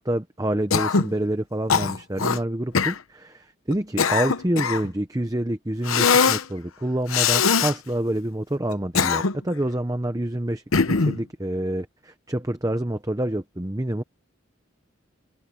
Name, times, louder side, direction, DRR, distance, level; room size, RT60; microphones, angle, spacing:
voice 1, 0.0-14.0, right 1 dB, 15° right, 0.8 m, -27 dB
Cough, 0.7-1.1 1.7-2.4 2.7-3.0 3.7-4.9 5.9-6.4 7.1-7.7 8.7-9.5 10.7-11.2, left 5 dB, 85° left, 0.9 m, -21 dB
head